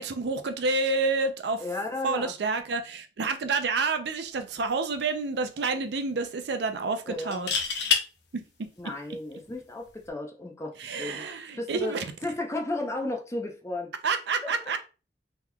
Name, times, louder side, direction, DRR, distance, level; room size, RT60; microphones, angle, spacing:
voice 1, 0.0-1.6 2.0-7.5 8.3-8.4 10.8-12.0 14.0-14.8, right 4 dB, 70° right, 0.5 m, -29 dB
voice 2, 1.6-2.3 7.1-7.4 8.8-11.2 11.6-13.9 14.4-14.5, left 2 dB, 15° left, 0.6 m, -34 dB
sound 1, 4.4-4.6 4.9-5.0 7.2-8.0 9.9-10.1, left 6 dB, 70° left, 0.6 m, -26 dB
3.6 x 3.0 x 2.3 m
head